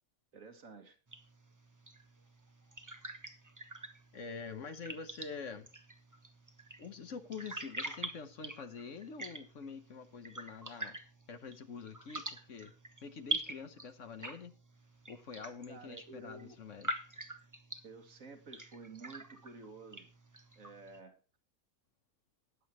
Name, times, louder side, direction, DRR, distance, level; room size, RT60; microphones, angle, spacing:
voice 1, 0.3-1.0 15.7-16.6 17.8-20.1 20.6-21.2, right 3 dB, 65° right, 6 dB, 2.0 m, -51 dB
sound 1, 1.1-21.0, right 1 dB, 15° right, 0.9 m, -45 dB
voice 2, 4.1-5.7 6.8-11.0 11.3-12.7 13.0-14.5 15.1-17.0, left 5 dB, 60° left, 9 dB, 1.3 m, -46 dB
19.5 x 7.6 x 3.0 m, 0.36 s
omnidirectional pair, 1.5 m